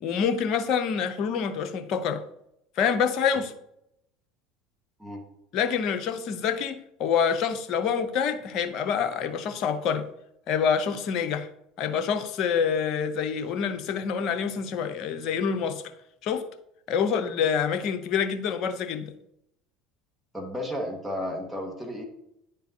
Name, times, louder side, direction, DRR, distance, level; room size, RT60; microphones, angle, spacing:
voice 1, 0.0-2.2 2.8-3.5 5.5-10.1 10.5-11.5 11.8-15.8 16.2-16.4 16.9-19.1, left 7 dB, 55° left, 10 dB, 0.7 m, -26 dB
voice 2, 20.3-22.0, left 1 dB, ahead, 0 dB, 1.6 m, -33 dB
10.5 x 3.8 x 2.8 m, 0.80 s
hypercardioid pair, 80°, 0 cm